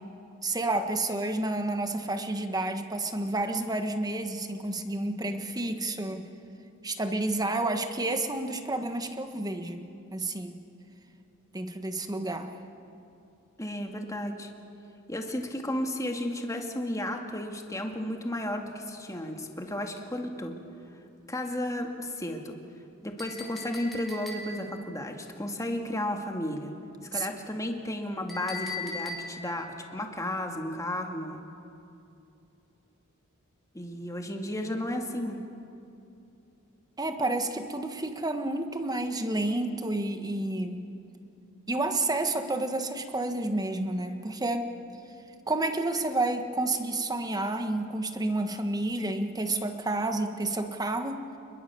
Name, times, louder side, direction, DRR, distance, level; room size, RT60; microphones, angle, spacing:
voice 1, 0.4-6.3 6.8-10.5 11.5-12.5 27.1-27.3 37.0-40.8 41.7-44.8 45.5-51.2, right 2 dB, 20° right, 7 dB, 1.5 m, -30 dB
voice 2, 13.6-14.5 15.1-20.6 21.3-22.6 23.0-26.7 27.1-31.4 33.7-35.4, left 1 dB, 15° left, 3 dB, 2.1 m, -33 dB
Chink clink, 23.2-24.8 28.3-29.6, left 4 dB, ahead, 4.0 m, -39 dB
28.5 x 21.5 x 7.1 m, 2.8 s
head